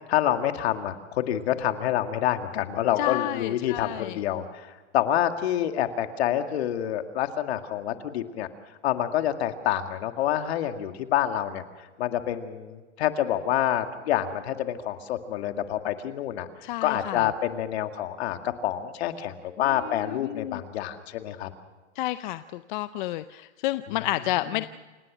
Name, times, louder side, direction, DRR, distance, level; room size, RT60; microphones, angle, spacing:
voice 1, 0.1-8.5 8.8-11.6 12.0-16.5 16.8-21.5 23.9-24.0 24.4-24.7, left 11 dB, 60° left, 7 dB, 2.1 m, -27 dB
voice 2, 3.0-4.2 16.6-17.3 20.1-20.6 22.0-24.6, left 15 dB, 40° left, 13 dB, 0.6 m, -30 dB
28.5 x 17.0 x 6.2 m, 1.3 s
hypercardioid pair, 140°, 36 cm